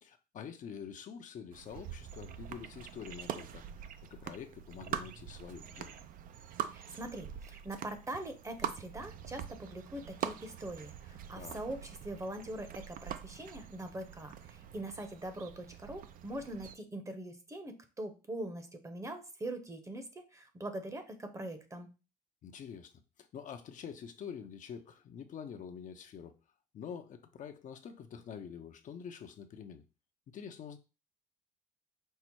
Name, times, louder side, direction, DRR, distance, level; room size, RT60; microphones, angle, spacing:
voice 1, 0.0-6.0 11.3-11.6 22.4-22.9 23.2-26.3 26.7-29.8 30.3-30.8, left 7 dB, 50° left, 0.6 m, -46 dB
sound 1, 1.5-16.7, right 9 dB, 55° right, 0.5 m, -44 dB
voice 2, 6.7-21.9, right 1 dB, 20° right, 0.8 m, -42 dB
5.4 x 2.0 x 4.5 m
cardioid pair, 110°, 17 cm